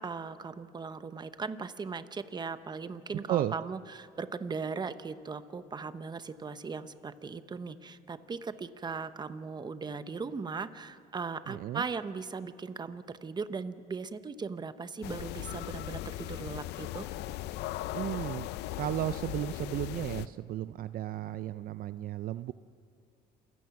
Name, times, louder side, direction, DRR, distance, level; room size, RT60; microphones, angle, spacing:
voice 1, 0.0-17.1, right 5 dB, 25° right, 12 dB, 0.9 m, -38 dB
voice 2, 11.5-11.8 17.9-18.5 18.8-22.5, right 13 dB, 60° right, 14 dB, 0.5 m, -34 dB
sound 1, 15.0-20.3, left 15 dB, 80° left, 0.5 m, -38 dB
28.0 x 16.0 x 5.9 m, 2.4 s
cardioid pair, 110°, 17 cm